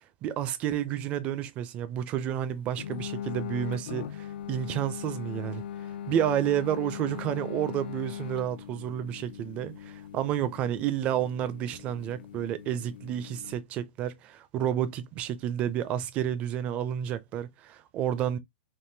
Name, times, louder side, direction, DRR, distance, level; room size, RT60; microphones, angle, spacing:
voice 1, 0.2-5.6 6.1-18.4, right 10 dB, 20° right, 0.4 m, -30 dB
sound 1, 2.8-13.6, left 9 dB, 60° left, 0.5 m, -40 dB
3.6 x 2.5 x 2.7 m
hypercardioid pair, 160°, 6 cm